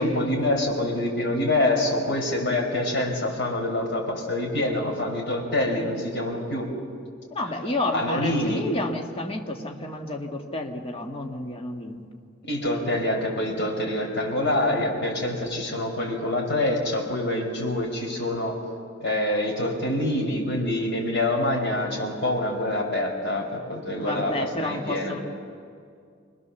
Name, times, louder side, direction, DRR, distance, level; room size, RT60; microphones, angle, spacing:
voice 1, 0.0-6.7 7.9-8.6 12.4-18.6 19.0-25.1, left 1 dB, 60° left, 0 dB, 4.8 m, -26 dB
voice 2, 7.3-12.1 23.9-25.2, left 1 dB, 30° left, 2 dB, 1.7 m, -30 dB
25.5 x 20.5 x 7.1 m, 2.3 s
head